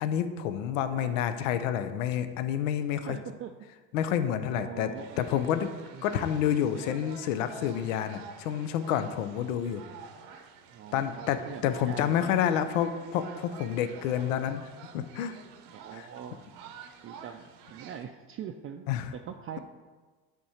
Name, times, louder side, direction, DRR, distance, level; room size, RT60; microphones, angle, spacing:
voice 1, 0.0-3.2 3.9-4.9 5.2-5.7 6.0-9.8 10.9-14.7 14.9-15.4 15.9-16.1 18.9-19.1, left 9 dB, 85° left, 10 dB, 0.6 m, -29 dB
voice 2, 3.1-3.7 4.5-5.1 5.9-6.0 9.4-9.6 10.7-12.3 15.7-16.4 17.0-18.9 19.1-19.6, right 9 dB, 35° right, 6 dB, 0.4 m, -42 dB
sound 1, 5.0-18.0, right 5 dB, 70° right, 0.8 m, -49 dB
8.3 x 3.7 x 4.3 m, 1.3 s
supercardioid pair, 90°, 37 cm